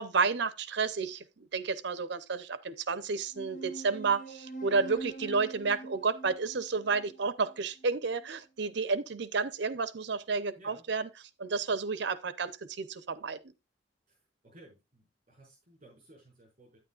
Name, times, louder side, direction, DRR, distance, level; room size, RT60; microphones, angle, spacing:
voice 1, 0.0-11.1 11.4-13.5, right 4 dB, 65° right, 0.7 m, -31 dB
sound 1, 3.3-8.3, right 3 dB, 45° left, 1.2 m, -45 dB
voice 2, 14.4-16.8, right 1 dB, 40° right, 5.5 m, -57 dB
9.3 x 9.3 x 2.4 m
head